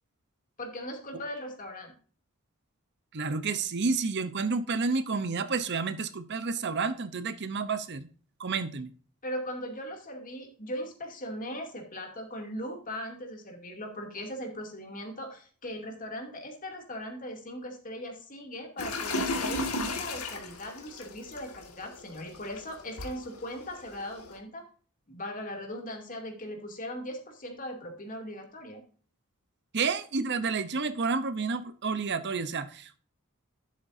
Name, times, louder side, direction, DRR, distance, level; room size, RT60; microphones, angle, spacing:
voice 1, 0.6-1.9 9.2-24.6 25.1-28.8, equal, 40° left, 2.6 m, -39 dB
voice 2, 3.1-8.1 8.4-8.9 29.7-33.0, right 4 dB, 50° right, 0.7 m, -30 dB
sound 1, 18.8-24.4, left 2 dB, 85° left, 2.0 m, -35 dB
11.0 x 8.5 x 2.7 m
head